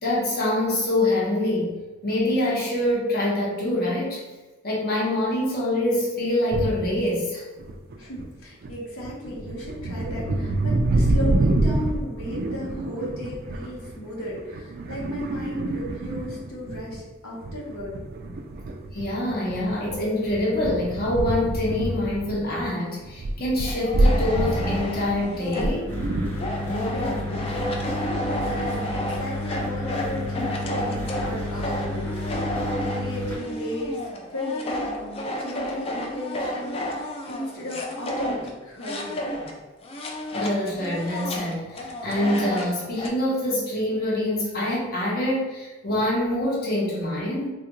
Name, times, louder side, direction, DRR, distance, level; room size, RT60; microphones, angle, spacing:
voice 1, 0.0-1.7 2.0-4.2 4.6-7.4 18.9-26.0 40.3-47.5, left 1 dB, 50° left, -5 dB, 0.8 m, -25 dB
sound 1, 6.5-7.0 7.6-8.3 8.6-17.0 17.4-22.7 23.0-26.3, right 2 dB, 50° right, 0.3 m, -27 dB
voice 2, 7.9-17.9 26.8-32.5 32.9-39.2, left 1 dB, 80° left, -5 dB, 0.8 m, -35 dB
sound 2, 23.6-25.9 26.4-39.6 39.8-43.1, left 1 dB, 30° left, 0.4 m, -31 dB
sound 3, 25.9-33.4, left 1 dB, 10° left, 0.8 m, -31 dB
3.3 x 2.4 x 2.9 m, 1.2 s
head